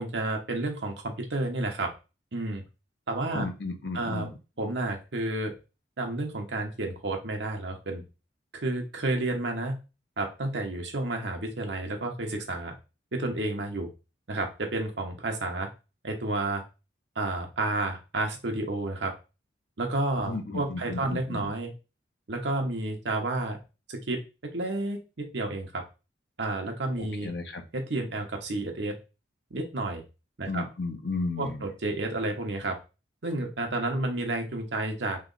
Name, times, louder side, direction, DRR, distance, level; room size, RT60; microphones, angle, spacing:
voice 1, 0.0-1.9 2.3-2.6 3.1-3.5 3.9-4.3 4.6-5.5 6.0-8.0 8.6-9.8 10.2-12.7 13.1-13.9 14.3-15.7 16.0-16.6 17.2-19.1 19.8-21.7 22.3-23.6 23.9-25.8 26.4-27.3 27.7-29.0 29.5-30.0 30.4-30.7 31.4-32.8 33.2-35.2, right 2 dB, 70° right, 3 dB, 1.0 m, -31 dB
voice 2, 3.3-4.3 20.3-21.5 27.0-27.6 30.5-31.6, left 3 dB, 60° left, 5 dB, 0.8 m, -34 dB
3.2 x 3.0 x 3.9 m, 0.29 s
head